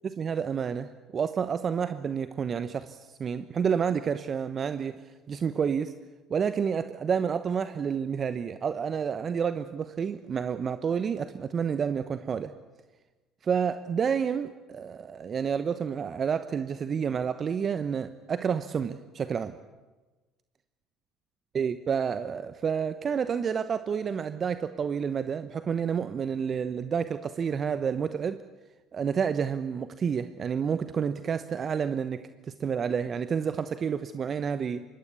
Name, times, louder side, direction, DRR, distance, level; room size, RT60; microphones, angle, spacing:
voice 1, 0.0-5.0 5.3-5.9 6.3-12.5 13.4-19.6 21.5-28.4 28.9-34.9, right 7 dB, 40° right, 12 dB, 1.0 m, -29 dB
22.5 x 18.5 x 8.4 m, 1.2 s
hypercardioid pair, 65°, 0 cm